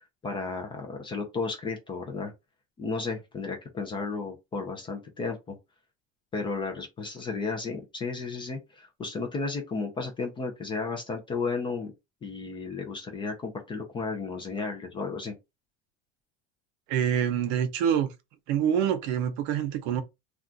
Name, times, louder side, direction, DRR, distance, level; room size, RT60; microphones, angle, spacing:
voice 1, 0.2-2.3 2.8-5.6 6.3-11.9 12.2-15.3, left 4 dB, 15° left, 0.4 m, -33 dB
voice 2, 16.9-18.1 18.5-20.0, right 9 dB, 55° right, 0.7 m, -26 dB
2.4 x 2.3 x 3.8 m
cardioid pair, 160°, 32 cm